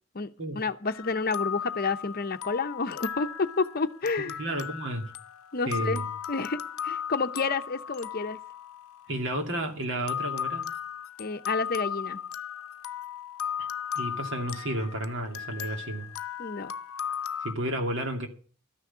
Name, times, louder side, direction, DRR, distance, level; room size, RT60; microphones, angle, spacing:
voice 1, 0.1-4.4 5.5-6.0 6.3-8.4 11.2-12.2 16.4-16.7, left 4 dB, 45° left, 0.8 m, -30 dB
sound 1, 0.9-9.5 10.1-17.5, left 8 dB, 90° left, 0.7 m, -36 dB
voice 2, 4.2-5.1 5.7-6.1 9.1-10.7 13.6-13.7 14.0-16.1 17.4-18.3, right 1 dB, 60° right, 2.5 m, -32 dB
13.0 x 6.4 x 9.6 m
head